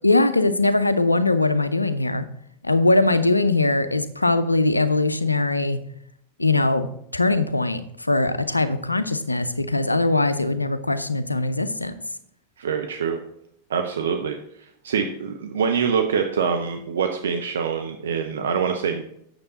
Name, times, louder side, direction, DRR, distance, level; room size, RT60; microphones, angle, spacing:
voice 1, 0.0-2.3 2.6-5.8 6.4-11.9, left 2 dB, 85° left, 13 dB, 0.6 m, -21 dB
voice 2, 12.6-13.2 13.7-19.0, right 6 dB, 65° right, 4 dB, 0.7 m, -25 dB
8.8 x 6.8 x 4.0 m, 0.73 s
figure-of-eight pair, 90°, 0 cm